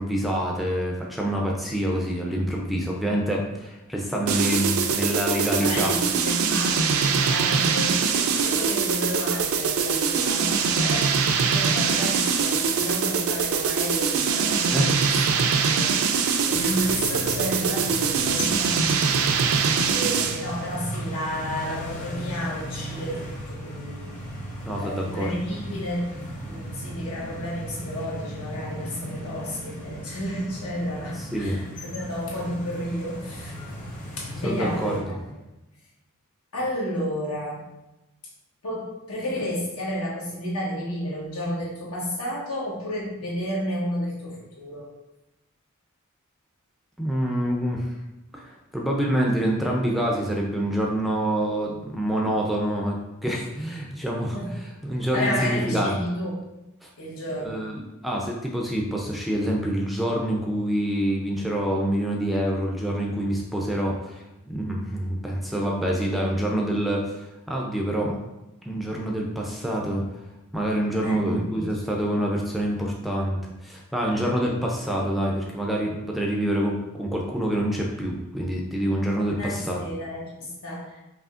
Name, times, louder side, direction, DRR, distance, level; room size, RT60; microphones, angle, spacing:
voice 1, 0.0-5.9 14.7-15.0 15.4-15.6 24.6-25.3 31.3-31.6 34.4-35.0 47.0-47.9 48.3-53.0 53.2-56.0 56.8-56.9 57.4-67.2 67.5-68.2 68.6-70.0 70.5-79.8, right 1 dB, ahead, -2 dB, 0.4 m, -26 dB
sound 1, 4.3-20.5, right 6 dB, 70° right, 0.4 m, -23 dB
voice 2, 5.6-15.0 15.7-16.0 16.5-19.4 19.8-24.2 24.8-33.5 34.2-35.4 36.5-37.7 38.6-44.9 54.3-54.5 55.1-56.4 57.0-57.7 71.0-71.7 79.4-81.0, equal, 80° left, -4 dB, 1.2 m, -32 dB
sound 2, 16.5-35.0, equal, 35° left, 1.0 m, -37 dB
4.9 x 2.8 x 2.4 m, 0.97 s
head